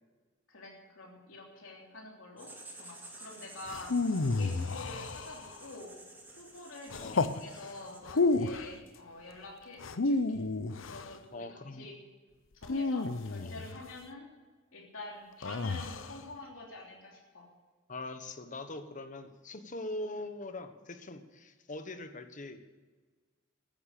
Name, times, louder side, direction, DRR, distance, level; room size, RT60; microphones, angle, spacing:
voice 1, 0.5-5.9 6.4-10.4 10.9-11.9 12.6-14.3 14.7-17.5, left 2 dB, 85° left, -1 dB, 3.3 m, -47 dB
Writing, 2.4-8.3, right 2 dB, 10° right, 2.6 m, -52 dB
sound 1, 3.7-5.7 6.9-7.4 8.1-8.7 9.8-11.1 12.6-13.8 15.4-16.2, left 3 dB, 70° left, 0.8 m, -31 dB
voice 2, 11.3-11.9 13.4-13.5 17.9-22.8, left 2 dB, 40° left, 9 dB, 1.2 m, -42 dB
14.5 x 10.5 x 6.6 m, 1.4 s
head